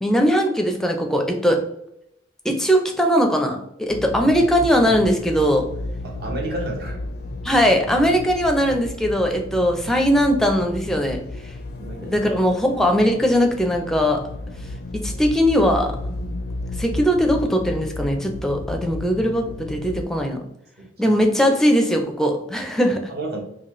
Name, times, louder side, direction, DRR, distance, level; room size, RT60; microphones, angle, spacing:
voice 1, 0.0-1.7 2.4-5.7 7.4-11.2 12.1-14.2 14.9-16.3 16.8-20.4 21.0-23.0, equal, 5° left, 3 dB, 0.4 m, -20 dB
sound 1, 3.9-20.0, left 2 dB, 60° left, 0.4 m, -33 dB
voice 2, 6.0-7.0 11.8-12.3 20.8-21.1 23.1-23.4, right 2 dB, 55° right, 0 dB, 0.9 m, -31 dB
3.9 x 2.3 x 3.0 m, 0.76 s
head